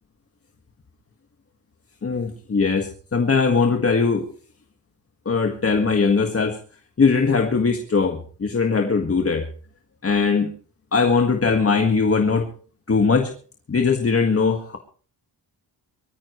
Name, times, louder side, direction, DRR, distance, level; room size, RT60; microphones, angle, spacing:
voice 1, 2.0-4.3 5.2-6.6 7.0-9.5 10.0-10.5 10.9-12.5 12.9-13.3 13.7-14.8, left 4 dB, 35° left, 4 dB, 1.7 m, -20 dB
23.0 x 14.5 x 3.1 m, 0.41 s
wide cardioid pair, 150°, 42 cm